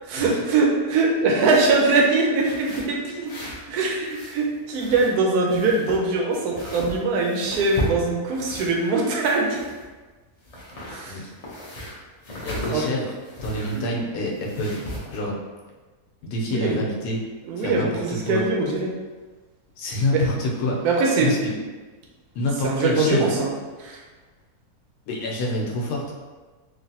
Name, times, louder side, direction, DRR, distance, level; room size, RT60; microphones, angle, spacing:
voice 1, 0.0-3.3 3.7-9.6 10.9-11.2 12.7-12.9 13.7-13.9 16.5-16.8 17.5-18.9 20.1-20.2 20.8-21.3 22.6-23.5 23.8-24.0, right 3 dB, 80° right, -1 dB, 1.1 m, -22 dB
sound 1, 1.3-1.9 2.4-3.7 3.9-5.2 5.5-8.9 9.2-10.1 10.4-13.9 14.3-15.2, equal, 65° left, 0.3 m, -35 dB
voice 2, 12.4-13.1 13.4-14.8 15.1-15.4 16.3-17.2 17.6-18.4 19.8-20.8 21.2-21.5 22.3-23.3 25.1-26.0, left 1 dB, 80° left, -2 dB, 1.2 m, -27 dB
3.2 x 2.5 x 2.7 m, 1.3 s
omnidirectional pair, 1.7 m